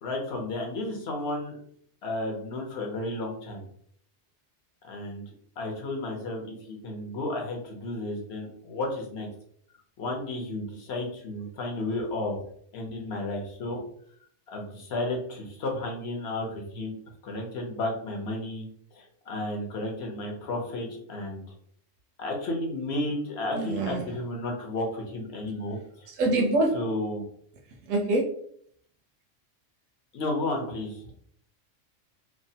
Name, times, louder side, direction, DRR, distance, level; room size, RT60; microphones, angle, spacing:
voice 1, 0.0-1.6 2.0-3.6 4.8-5.2 5.6-9.3 10.0-12.4 12.7-13.8 14.5-16.9 17.2-18.7 18.9-21.4 22.2-26.1 26.7-27.3 30.1-31.1, left 2 dB, 60° left, 1 dB, 0.9 m, -32 dB
voice 2, 23.5-24.0 26.2-26.8 27.9-28.3, right 2 dB, 90° right, -1 dB, 0.9 m, -24 dB
3.0 x 2.1 x 2.7 m, 0.63 s
omnidirectional pair, 1.3 m